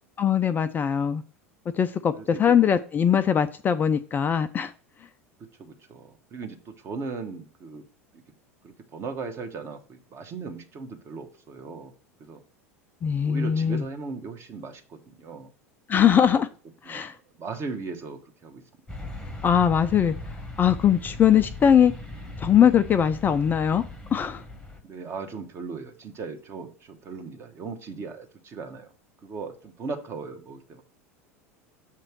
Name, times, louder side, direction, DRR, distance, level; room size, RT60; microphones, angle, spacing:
voice 1, 0.2-1.2 1.7-4.7 13.0-13.8 15.9-16.5 16.8-17.1 19.4-21.9 22.4-23.8 24.1-24.4, left 8 dB, 25° left, 11 dB, 0.4 m, -21 dB
voice 2, 2.2-2.5 5.4-7.8 8.1-8.2 8.6-11.9 12.2-12.4 13.2-15.5 16.8-17.1 17.4-18.6 24.8-28.9 29.2-30.8, right 4 dB, 35° right, 5 dB, 1.2 m, -38 dB
sound 1, 18.9-24.8, left 1 dB, 10° left, 1.0 m, -39 dB
7.3 x 3.0 x 6.1 m, 0.39 s
figure-of-eight pair, 80°, 8 cm